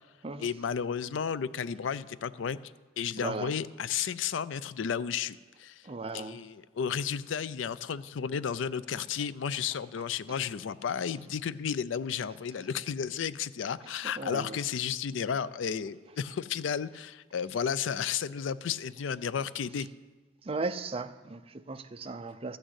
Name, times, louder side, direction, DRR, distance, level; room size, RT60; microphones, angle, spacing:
voice 1, 0.4-2.6 3.0-5.9 6.1-19.9, left 7 dB, 75° left, 17 dB, 0.4 m, -33 dB
voice 2, 3.2-3.5 5.8-6.4 14.2-14.6 20.4-22.6, right 3 dB, 30° right, 10 dB, 0.5 m, -36 dB
13.0 x 6.3 x 8.1 m, 1.3 s
head